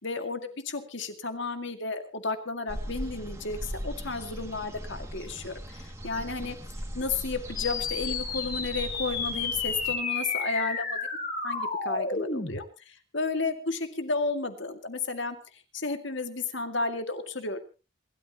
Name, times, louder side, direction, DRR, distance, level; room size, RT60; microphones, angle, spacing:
voice 1, 0.0-6.6 6.9-10.8 11.4-15.4 15.7-17.6, left 3 dB, 60° left, 8 dB, 2.1 m, -32 dB
sound 1, 2.7-9.9, equal, 15° right, 2.1 m, -39 dB
sound 2, 7.6-12.6, left 4 dB, 40° left, 6.5 m, -31 dB
27.5 x 13.0 x 2.9 m, 0.31 s
head